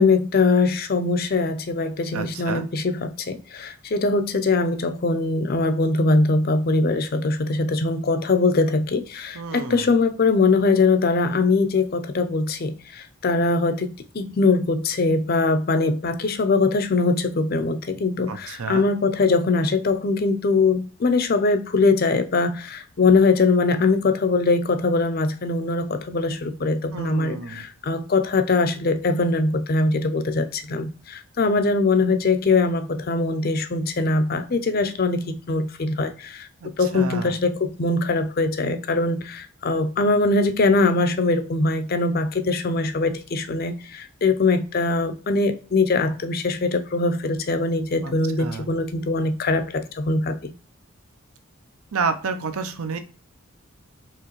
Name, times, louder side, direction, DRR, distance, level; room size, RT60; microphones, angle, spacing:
voice 1, 0.0-36.5 36.8-50.5, left 3 dB, 45° left, 0.5 m, -22 dB
voice 2, 2.1-2.7 9.3-10.0 18.3-18.9 26.9-27.6 36.6-37.4 48.0-48.7 51.9-53.0, right 4 dB, 80° right, 0.6 m, -30 dB
4.8 x 3.1 x 3.0 m
head